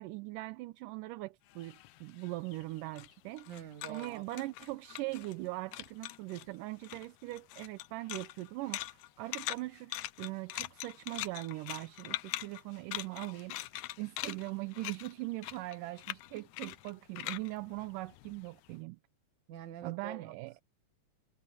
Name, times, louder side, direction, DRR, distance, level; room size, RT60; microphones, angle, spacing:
voice 1, 0.0-3.5 3.9-13.6 14.0-19.0 19.8-20.5, right 20 dB, 85° right, 2.3 m, -41 dB
sound 1, 1.5-5.5 5.7-6.5 6.8-18.7, left 16 dB, 75° left, 1.9 m, -43 dB
voice 2, 3.5-4.2 19.5-20.3, right 8 dB, 70° right, 3.0 m, -45 dB
omnidirectional pair, 3.7 m